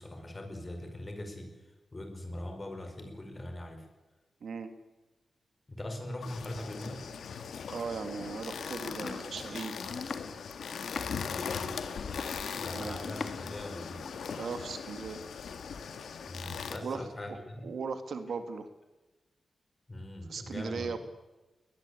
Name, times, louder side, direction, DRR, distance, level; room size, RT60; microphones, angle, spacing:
voice 1, 0.0-3.9 5.7-7.0 11.2-11.8 12.6-14.0 16.2-17.7 19.9-20.9, left 1 dB, 25° left, 5 dB, 5.3 m, -41 dB
voice 2, 4.4-4.7 7.7-9.8 12.7-13.0 14.3-15.2 16.8-17.4 17.6-18.7 20.3-21.0, right 5 dB, 70° right, 9 dB, 2.1 m, -38 dB
sound 1, 6.2-16.8, left 6 dB, 85° left, 2.0 m, -39 dB
Domestic sounds home sounds, 8.8-13.6 13.9-14.5, left 4 dB, 50° left, 2.2 m, -42 dB
21.0 x 20.5 x 8.5 m, 1.1 s
wide cardioid pair, 125°, 0 cm